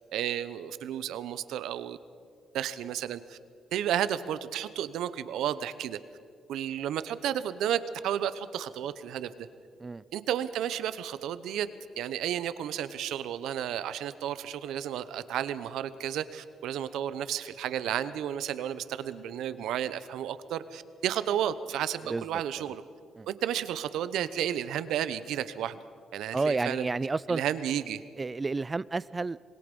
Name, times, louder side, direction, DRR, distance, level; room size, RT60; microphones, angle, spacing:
voice 1, 0.1-2.0 2.5-3.4 3.7-6.0 6.5-9.5 10.1-11.7 12.0-22.8 23.3-25.8 26.1-26.9 27.3-28.0, right 10 dB, 80° right, 14 dB, 0.9 m, -32 dB
voice 2, 26.3-27.4 28.2-29.4, right 3 dB, 25° right, 20 dB, 0.4 m, -30 dB
26.0 x 20.5 x 5.4 m, 2.2 s
cardioid pair, 90°, 0 cm